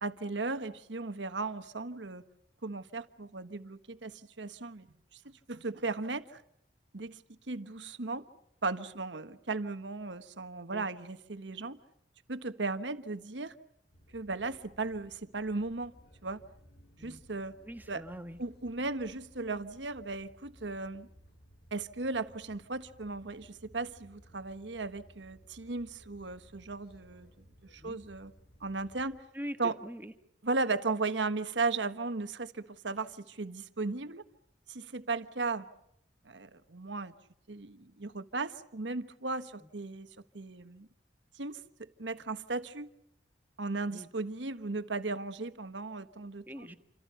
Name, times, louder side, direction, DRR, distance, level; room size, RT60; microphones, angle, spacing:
voice 1, 0.0-2.2 2.6-4.9 5.1-6.4 6.9-7.2 7.5-8.3 8.6-11.8 12.3-13.5 14.1-15.9 16.2-16.4 17.0-17.5 17.9-18.0 18.4-21.1 21.7-27.3 27.7-28.3 28.6-29.2 29.6-29.8 30.4-34.2 34.7-35.7 36.2-37.1 37.5-40.1 40.3-40.9 41.3-42.9 43.6-46.7, right 3 dB, 85° right, 1.4 m, -36 dB
sound 1, 13.9-29.1, equal, 60° left, 6.0 m, -60 dB
voice 2, 17.6-18.4 27.8-28.0 29.3-30.1 43.9-44.1 46.5-46.8, equal, 10° right, 1.5 m, -43 dB
28.5 x 27.0 x 5.7 m
head